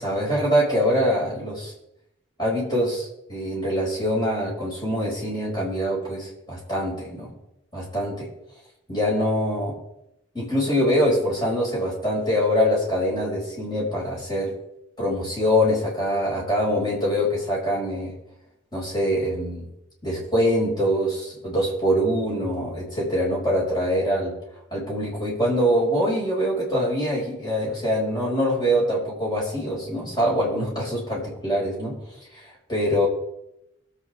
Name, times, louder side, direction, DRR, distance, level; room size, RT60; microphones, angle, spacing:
voice 1, 0.0-1.7 2.4-7.3 7.7-8.3 8.9-9.7 10.3-14.5 15.0-18.1 18.7-19.7 20.0-24.3 24.7-32.0 32.4-32.5 32.7-33.1, equal, 20° left, -5 dB, 4.9 m, -24 dB
23.0 x 8.3 x 3.3 m, 0.86 s
head